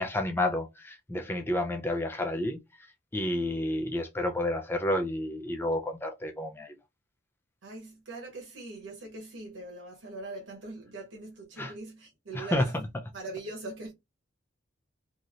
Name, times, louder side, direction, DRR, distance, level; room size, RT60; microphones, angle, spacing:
voice 1, 0.0-2.6 3.1-6.8 11.6-11.7 12.3-12.6, left 1 dB, 10° left, 0.4 m, -30 dB
voice 2, 7.6-12.7 13.1-13.9, right 2 dB, 80° right, 1.1 m, -41 dB
3.0 x 2.7 x 2.4 m
head